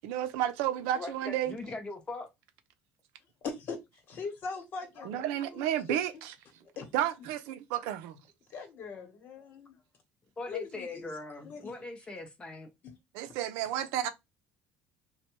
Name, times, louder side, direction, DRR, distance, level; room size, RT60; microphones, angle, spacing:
voice 1, 0.0-1.5 5.0-6.3 6.9-8.2 13.1-14.1, right 11 dB, 85° right, 0.5 m, -31 dB
voice 2, 0.9-2.3 6.6-6.7 10.4-12.7, left 2 dB, 25° left, 0.7 m, -41 dB
voice 3, 3.4-5.6 5.9-6.0 6.8-6.9 8.5-9.8 10.5-11.1 11.4-11.7 12.8-12.9, left 5 dB, 55° left, 1.1 m, -40 dB
3.1 x 2.2 x 3.0 m
supercardioid pair, 105°, 4 cm